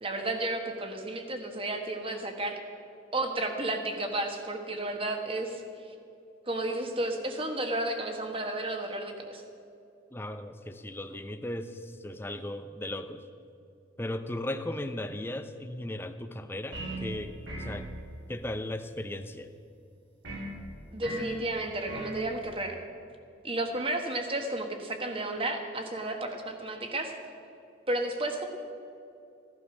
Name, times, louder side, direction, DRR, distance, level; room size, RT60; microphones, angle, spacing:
voice 1, 0.0-2.6 3.1-5.6 6.5-9.4 20.9-22.8 23.4-27.1 27.9-28.4, right 2 dB, 25° right, 4 dB, 1.4 m, -32 dB
voice 2, 10.1-13.2 14.0-17.9 18.3-19.5, left 1 dB, 10° left, 9 dB, 0.6 m, -36 dB
sound 1, 16.7-17.1 17.5-17.8 20.2-20.5 21.0-21.3 21.9-22.2, right 1 dB, 70° right, 3.0 m, -37 dB
16.0 x 11.5 x 6.1 m, 2.6 s
head